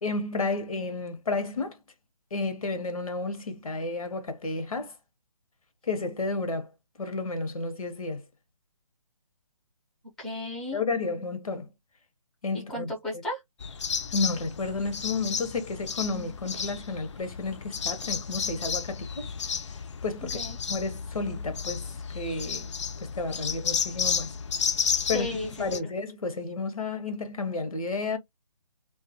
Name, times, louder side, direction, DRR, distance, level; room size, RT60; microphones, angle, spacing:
voice 1, 0.0-1.8 2.3-4.9 5.8-6.7 7.0-8.2 10.7-11.7 12.4-12.9 14.1-19.3 20.0-20.4 20.7-22.7 23.0-24.3 25.1-25.3 25.6-28.2, left 3 dB, 90° left, 0.8 m, -31 dB
voice 2, 10.2-10.8 12.7-13.4 20.2-20.6 25.1-25.8, left 1 dB, ahead, 0.5 m, -34 dB
sound 1, 13.6-25.8, left 6 dB, 55° left, 0.4 m, -32 dB
2.3 x 2.2 x 2.6 m
hypercardioid pair, 160°, 18 cm